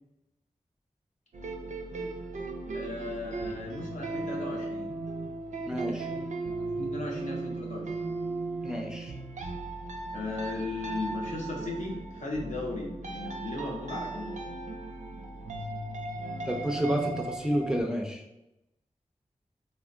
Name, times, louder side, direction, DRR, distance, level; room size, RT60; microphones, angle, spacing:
sound 1, 1.3-17.8, right 2 dB, 70° right, 0.4 m, -37 dB
voice 1, 2.7-4.9 6.1-6.2 6.7-8.1 10.1-14.4, left 2 dB, 70° left, -2 dB, 0.7 m, -36 dB
voice 2, 5.7-6.1 8.6-9.1 16.5-18.2, equal, 5° right, 1 dB, 0.4 m, -30 dB
3.3 x 2.1 x 2.5 m, 0.92 s
wide cardioid pair, 55°, 13 cm